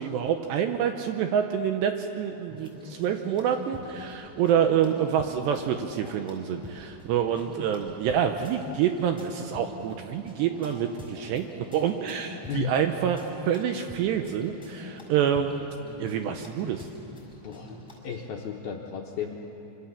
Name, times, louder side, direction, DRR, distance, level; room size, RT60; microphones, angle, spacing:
voice 1, 0.0-15.7 16.0-16.8, right 8 dB, 80° right, 6 dB, 2.6 m, -27 dB
sound 1, 2.5-18.0, left 2 dB, ahead, 5.3 m, -45 dB
voice 2, 12.4-12.7 17.2-17.8 18.0-19.5, left 7 dB, 70° left, 0 dB, 2.4 m, -34 dB
26.0 x 25.5 x 7.2 m, 2.9 s
omnidirectional pair, 5.7 m